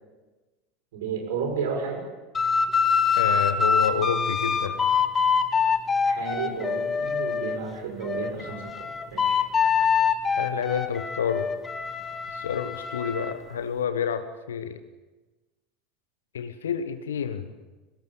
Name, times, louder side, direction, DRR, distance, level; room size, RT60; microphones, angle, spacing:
voice 1, 0.9-2.0 6.0-9.4, right 5 dB, 65° right, 3 dB, 6.2 m, -32 dB
sound 1, 2.3-7.6 8.0-13.3, left 6 dB, 20° left, 1.7 m, -25 dB
voice 2, 3.2-4.9 10.3-11.5 12.3-14.8 16.3-17.5, left 8 dB, 70° left, 10 dB, 1.2 m, -29 dB
24.0 x 19.0 x 9.0 m, 1.2 s
figure-of-eight pair, 75°, 0 cm